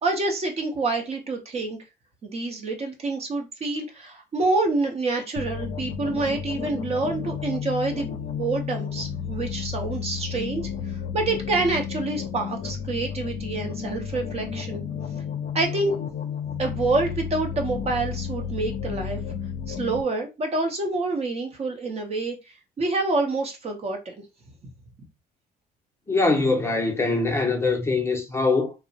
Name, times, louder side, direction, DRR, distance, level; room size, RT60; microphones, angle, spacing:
voice 1, 0.0-1.8 2.2-14.8 15.5-16.0 16.6-19.2 19.7-24.2, right 3 dB, 40° right, 0.7 m, -27 dB
sound 1, 5.4-20.0, left 7 dB, 55° left, 0.5 m, -32 dB
voice 2, 26.1-28.7, left 3 dB, 15° left, 0.6 m, -23 dB
2.8 x 2.0 x 2.6 m
cardioid pair, 110°, 17 cm